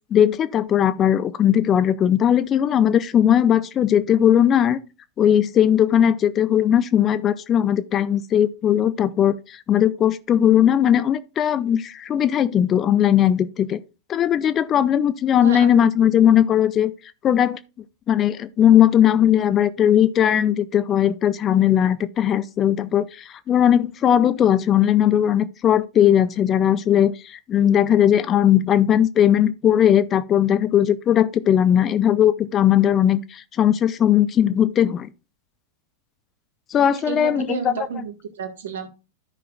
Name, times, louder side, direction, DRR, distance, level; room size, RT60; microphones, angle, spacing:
voice 1, 0.1-4.8 5.2-13.8 14.1-16.9 17.2-17.6 18.1-35.1 36.7-37.9, left 10 dB, 30° left, 0.5 m, -18 dB
voice 2, 15.4-15.8 37.1-38.9, right 6 dB, 60° right, 1.7 m, -30 dB
13.0 x 5.8 x 2.5 m
figure-of-eight pair, 90°, 0 cm